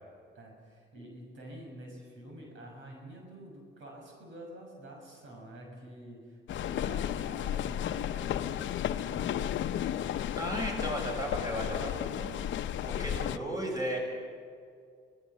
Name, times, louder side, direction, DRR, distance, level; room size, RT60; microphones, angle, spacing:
voice 1, 0.3-8.7 9.0-10.2 10.4-10.6, right 1 dB, 75° right, 1 dB, 6.7 m, -48 dB
sound 1, 6.5-13.4, left 10 dB, 70° left, 0.8 m, -33 dB
voice 2, 10.4-14.0, equal, 20° right, 0 dB, 6.8 m, -35 dB
25.5 x 17.5 x 7.4 m, 2.2 s
cardioid pair, 90°, 20 cm